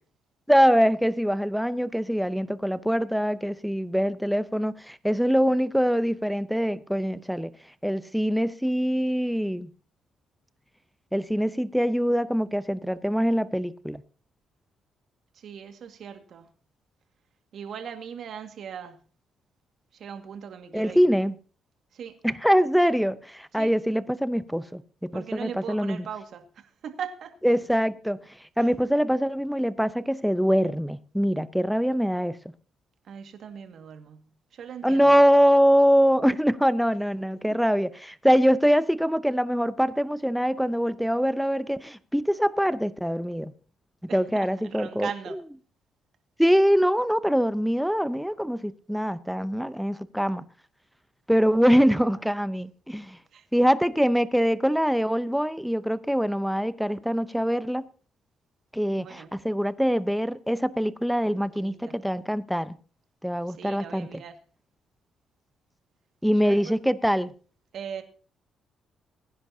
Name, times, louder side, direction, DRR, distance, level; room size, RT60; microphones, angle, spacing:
voice 1, 0.5-7.5 7.8-9.7 11.1-14.0 20.7-21.3 22.2-26.0 27.4-28.2 28.6-32.4 34.8-43.5 44.1-45.1 46.4-50.5 51.3-53.2 53.5-57.8 58.7-62.8 63.2-64.1 66.2-67.3, equal, ahead, 0.7 m, -23 dB
voice 2, 15.3-16.5 17.5-19.0 19.9-21.1 21.9-22.2 23.5-23.7 25.1-27.4 28.6-28.7 33.0-35.2 37.5-37.6 44.1-45.4 53.3-53.5 59.0-59.3 61.2-62.0 63.5-64.4 66.4-66.8 67.7-68.0, right 7 dB, 65° right, 1.9 m, -39 dB
21.0 x 10.5 x 2.8 m
cardioid pair, 90°, 0 cm